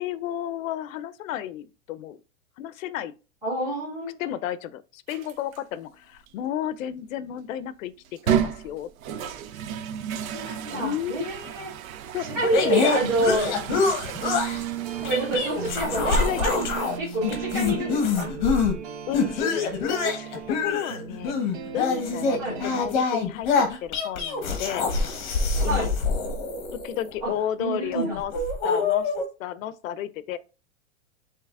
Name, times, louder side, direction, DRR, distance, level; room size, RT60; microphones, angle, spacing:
voice 1, 0.0-2.2 2.6-3.1 4.2-7.9 8.2-9.3 10.7-11.2 12.1-12.9 13.5-13.8 16.0-16.6 19.1-23.5 23.8-24.9 25.6-25.9 26.8-28.3 28.6-29.1 29.4-30.4, left 11 dB, 75° left, 0.5 m, -32 dB
voice 2, 3.4-4.1 10.2-11.7 12.2-13.5 15.0-16.7 17.0-18.4 22.4-22.6 25.6-25.9 27.2-27.3 27.6-28.2, right 1 dB, 5° right, 1.7 m, -27 dB
sound 1, 5.1-5.6 6.3-6.4 8.0-17.0, right 9 dB, 85° right, 0.6 m, -33 dB
sound 2, 12.5-14.6 15.0-16.9 17.2-18.7 19.1-27.1 27.8-29.2, left 4 dB, 35° left, 0.9 m, -25 dB
sound 3, 14.0-22.8, right 9 dB, 40° right, 0.5 m, -36 dB
6.5 x 2.9 x 2.4 m
supercardioid pair, 180°, 40 cm